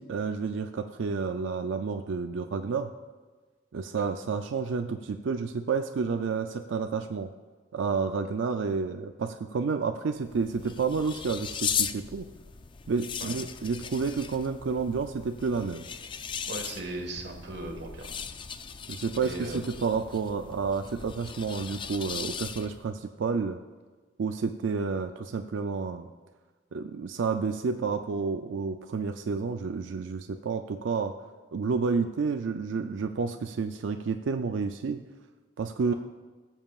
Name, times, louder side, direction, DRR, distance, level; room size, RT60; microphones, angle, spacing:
voice 1, 0.0-2.9 3.7-7.3 7.7-12.3 12.9-15.9 18.9-23.6 24.2-26.1 26.7-31.1 31.5-35.0 35.6-35.9, right 5 dB, 80° right, 7 dB, 0.4 m, -30 dB
sound 1, 10.2-22.9, left 7 dB, 25° left, 0.4 m, -38 dB
voice 2, 16.5-18.2 19.2-19.7, right 2 dB, 60° right, 3 dB, 1.5 m, -38 dB
20.5 x 7.3 x 2.4 m, 1.4 s
head